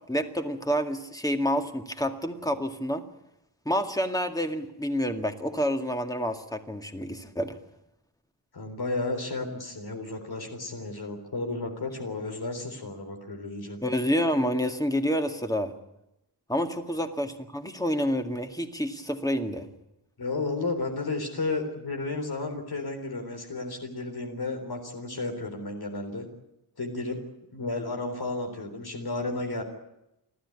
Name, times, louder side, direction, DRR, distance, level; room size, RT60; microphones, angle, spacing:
voice 1, 0.0-3.1 3.7-7.6 13.8-15.7 16.5-19.7, equal, 10° left, 6 dB, 2.0 m, -28 dB
voice 2, 8.5-13.8 20.2-26.3 26.8-27.2 27.5-29.6, left 3 dB, 70° left, 4 dB, 3.8 m, -33 dB
29.5 x 13.0 x 9.9 m, 0.88 s
wide cardioid pair, 100°, 39 cm